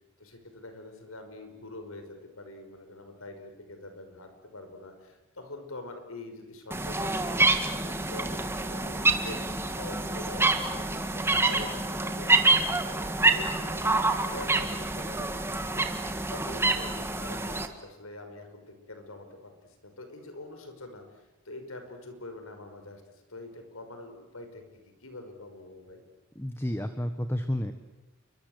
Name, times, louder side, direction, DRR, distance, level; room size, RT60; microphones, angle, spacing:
voice 1, 0.2-7.4 7.7-15.4 15.7-15.9 16.3-26.0, left 2 dB, 85° left, 6 dB, 5.4 m, -45 dB
sound 1, 6.7-17.7, right 2 dB, 10° right, 1.6 m, -27 dB
voice 2, 26.3-27.7, equal, 10° left, 9 dB, 1.2 m, -31 dB
29.0 x 24.0 x 8.0 m, 1.0 s
head